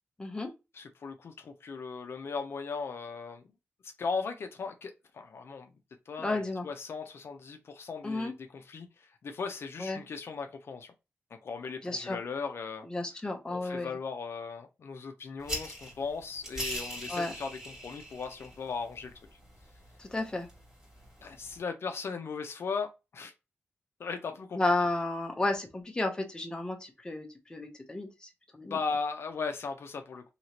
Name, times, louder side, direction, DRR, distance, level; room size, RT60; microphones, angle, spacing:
voice 1, 0.2-0.5 6.2-6.7 8.0-8.3 9.8-10.0 11.8-12.2 12.9-14.0 17.1-17.3 20.0-20.5 24.5-28.8, left 2 dB, 15° left, 0.7 m, -32 dB
voice 2, 0.7-3.4 4.0-5.7 6.1-10.9 11.3-12.9 13.5-19.1 21.2-22.9 23.1-23.3 24.0-24.6 28.7-30.2, left 5 dB, 60° left, 0.5 m, -37 dB
sound 1, 15.4-21.6, equal, 15° right, 1.9 m, -42 dB
2.9 x 2.8 x 2.8 m
wide cardioid pair, 115°, 5 cm